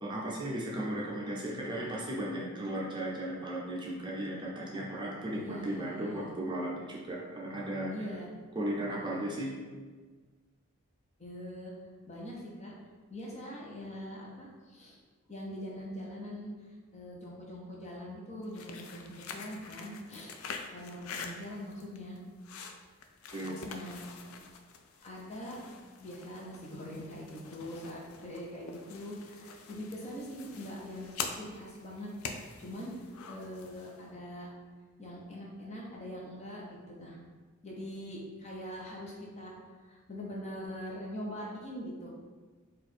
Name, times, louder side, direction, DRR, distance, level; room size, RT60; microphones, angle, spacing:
voice 1, 0.0-7.9 8.6-9.6 23.3-23.8, right 1 dB, 20° right, -4 dB, 0.6 m, -36 dB
voice 2, 5.3-6.3 7.9-8.3 11.2-11.7 12.0-12.8 13.1-15.0 15.3-16.5 16.9-20.4 20.7-22.2 23.4-24.3 25.0-25.6 26.0-34.5 35.0-37.2 37.6-39.5 39.8-42.1, equal, 30° left, -3 dB, 0.9 m, -43 dB
sound 1, 18.4-34.0, left 5 dB, 90° left, 0.4 m, -45 dB
4.4 x 2.5 x 4.4 m, 1.4 s
head